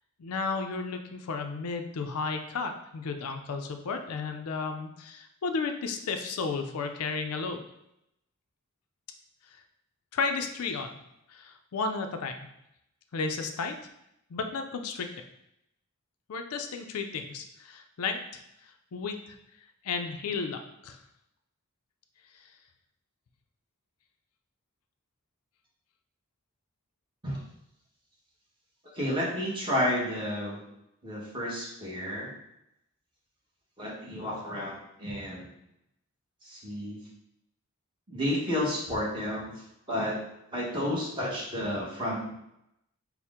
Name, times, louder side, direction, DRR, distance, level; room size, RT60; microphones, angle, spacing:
voice 1, 0.2-7.6 10.1-10.9 11.3-12.4 13.1-13.7 14.3-15.1 16.3-18.2 18.9-19.2 19.8-21.0, left 4 dB, 80° left, 6 dB, 0.5 m, -33 dB
voice 2, 28.9-30.6 31.0-32.3 33.8-35.5 36.4-37.0 38.1-39.5 39.9-40.2 40.5-42.3, left 1 dB, 20° right, -5 dB, 1.1 m, -31 dB
4.3 x 2.1 x 3.6 m, 0.82 s
head